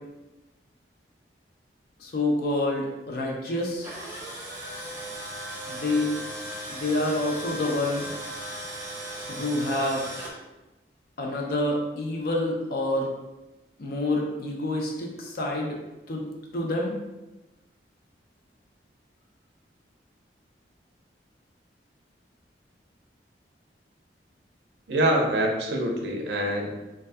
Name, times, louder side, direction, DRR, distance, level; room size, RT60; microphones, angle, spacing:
voice 1, 2.0-3.9 5.7-6.1 6.7-8.1 9.3-10.0 11.2-13.1 13.8-15.8 16.1-16.2 16.5-16.9, left 1 dB, 55° left, 0 dB, 0.4 m, -27 dB
Tools, 3.6-10.3, right 1 dB, 15° right, 0.6 m, -37 dB
voice 2, 24.9-26.7, right 1 dB, 70° right, 1 dB, 0.5 m, -25 dB
2.3 x 2.2 x 2.5 m, 1.0 s
head